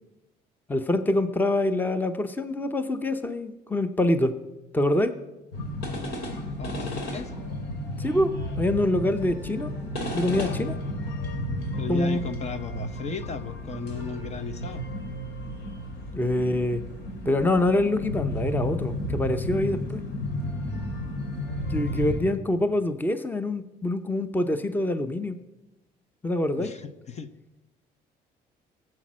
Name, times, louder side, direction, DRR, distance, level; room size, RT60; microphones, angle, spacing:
voice 1, 0.7-4.3 4.7-5.1 8.0-9.7 10.1-10.7 11.9-12.2 16.1-16.8 17.3-20.0 21.7-25.4 26.2-26.7, left 1 dB, 10° left, 10 dB, 0.8 m, -25 dB
sound 1, 5.5-22.2, left 1 dB, 90° left, 2.6 m, -32 dB
voice 2, 6.6-7.3 11.8-14.8 21.9-22.0 26.6-27.3, left 5 dB, 40° left, 11 dB, 0.8 m, -35 dB
16.5 x 7.6 x 6.2 m, 0.99 s
cardioid pair, 110°, 17 cm